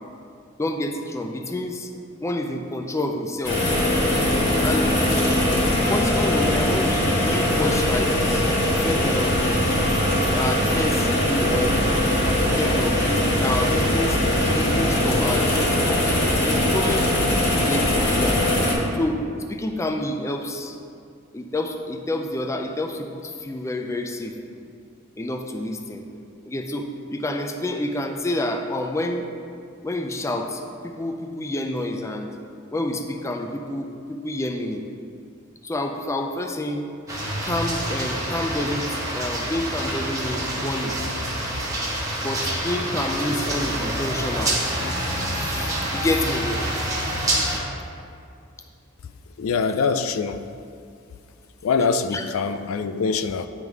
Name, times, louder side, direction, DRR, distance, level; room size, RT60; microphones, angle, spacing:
voice 1, 0.6-1.9 2.2-3.6 4.6-5.0 5.8-9.7 10.1-11.8 12.4-16.1 16.4-17.1 17.7-18.4 18.9-20.8 21.3-24.3 25.2-26.0 26.5-29.3 29.8-32.4 32.7-34.9 35.6-36.9 37.4-41.1 42.2-44.6 45.3-46.7 52.1-52.2, left 1 dB, 15° left, 4 dB, 0.4 m, -28 dB
sound 1, 3.4-18.7, left 1 dB, 60° left, 1.7 m, -21 dB
sound 2, 37.1-47.6, right 1 dB, 15° right, 1.3 m, -27 dB
voice 2, 49.4-50.5 51.6-53.5, left 5 dB, 80° left, 9 dB, 0.4 m, -24 dB
9.4 x 3.6 x 4.7 m, 2.3 s
head